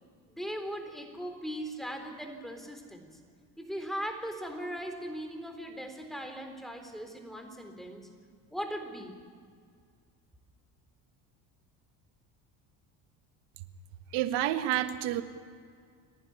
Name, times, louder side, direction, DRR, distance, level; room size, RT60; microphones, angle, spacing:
voice 1, 0.3-3.1 3.6-8.1 8.5-9.2, equal, ahead, 5 dB, 3.9 m, -39 dB
voice 2, 14.1-15.2, right 13 dB, 85° right, 10 dB, 1.5 m, -29 dB
29.5 x 11.5 x 9.9 m, 2.1 s
supercardioid pair, 100°, 41 cm